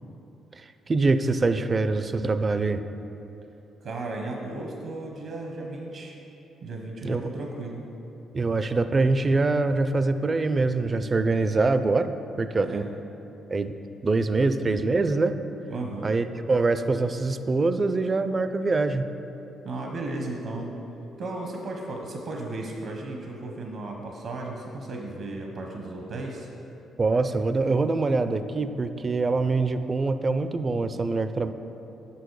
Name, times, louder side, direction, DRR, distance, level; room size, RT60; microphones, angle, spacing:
voice 1, 0.9-2.9 7.0-7.3 8.3-12.8 13.5-13.7 14.0-15.4 16.0-19.1 27.0-31.5, right 3 dB, 30° right, 10 dB, 0.4 m, -24 dB
voice 2, 3.8-6.2 6.6-7.8 12.6-12.9 15.7-16.1 19.6-20.8 21.2-26.5, right 2 dB, 70° right, 1 dB, 0.8 m, -35 dB
6.9 x 6.3 x 4.7 m, 3.0 s
cardioid pair, 90°, 0 cm